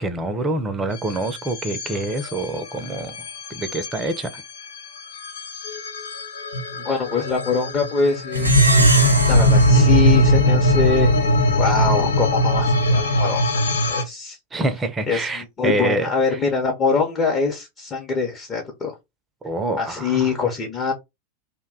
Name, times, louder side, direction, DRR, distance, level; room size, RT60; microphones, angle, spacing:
voice 1, 0.0-4.4 14.5-16.4 19.4-20.3, right 2 dB, 15° right, 0.6 m, -26 dB
sound 1, 0.9-14.0, equal, 65° left, 0.6 m, -20 dB
voice 2, 6.8-8.7 9.3-11.1 11.6-13.6 13.9-14.4 15.1-18.9 19.8-20.9, left 4 dB, 25° left, 0.8 m, -23 dB
Plucked string instrument, 8.3-11.1, right 1 dB, 85° right, 0.7 m, -24 dB
2.6 x 2.2 x 3.7 m
figure-of-eight pair, 90°, 0 cm